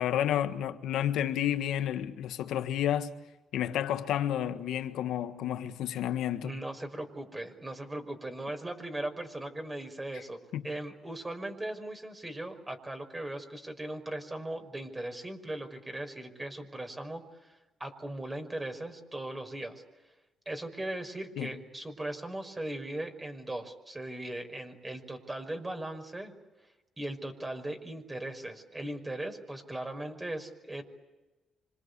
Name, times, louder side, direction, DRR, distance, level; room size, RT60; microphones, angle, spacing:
voice 1, 0.0-3.1 3.5-6.5 10.5-10.6 21.4-21.5, left 11 dB, 85° left, 1.6 m, -30 dB
voice 2, 6.4-10.4 10.6-17.5 17.8-19.8 20.5-26.3 27.0-30.8, right 1 dB, 15° right, 5.6 m, -38 dB
26.5 x 26.5 x 8.4 m
cardioid pair, 90°, 0 cm